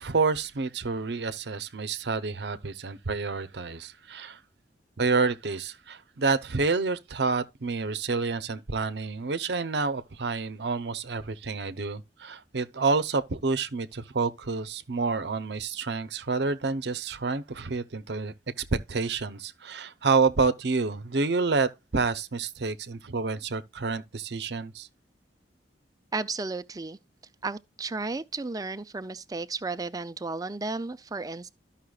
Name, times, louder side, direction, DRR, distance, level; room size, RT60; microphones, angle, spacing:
voice 1, 0.0-4.4 5.0-24.9, right 4 dB, 70° right, 0.7 m, -28 dB
voice 2, 26.1-27.0 27.4-31.5, right 3 dB, 20° right, 0.4 m, -33 dB
13.0 x 5.7 x 2.4 m
head